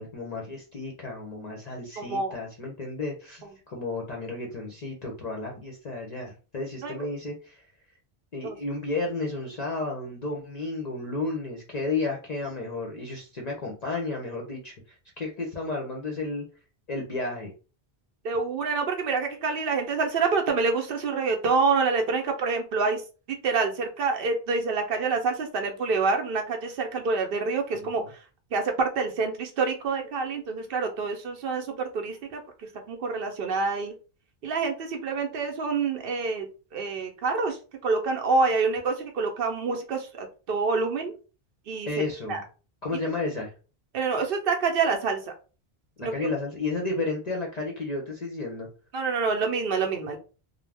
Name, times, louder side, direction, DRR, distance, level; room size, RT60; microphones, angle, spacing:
voice 1, 0.0-7.6 8.3-16.4 16.9-17.5 27.7-28.1 41.9-42.4 42.8-43.5 46.0-48.7, left 3 dB, 50° left, -1 dB, 0.6 m, -32 dB
voice 2, 2.0-2.3 6.8-6.9 8.4-8.6 18.2-23.0 23.3-28.0 28.5-33.9 34.4-36.5 36.7-41.1 41.7-41.9 42.3-42.4 43.9-45.2 46.0-46.3 48.9-50.2, right 4 dB, 65° right, 4 dB, 0.7 m, -27 dB
2.3 x 2.0 x 3.3 m, 0.34 s
omnidirectional pair, 1.1 m